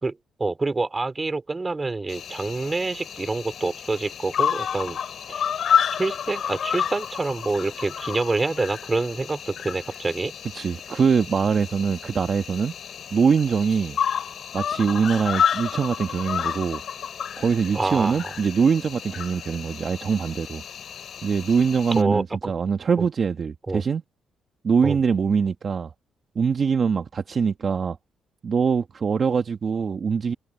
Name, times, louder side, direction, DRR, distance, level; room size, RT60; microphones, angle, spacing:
voice 1, 0.0-5.0 5.3-5.4 6.0-10.3 17.7-18.3 21.9-22.5 23.7-23.8 24.8-25.0, right 3 dB, 25° right, 3.7 m, -27 dB
Cricket, 2.1-22.0, left 8 dB, 60° left, 3.6 m, -30 dB
voice 2, 10.5-12.7 13.1-14.0 14.5-16.8 17.4-20.6 21.2-24.0 24.6-25.9 26.3-28.0 28.4-30.3, right 6 dB, 45° right, 1.5 m, -23 dB
cardioid pair, 90°, 0 cm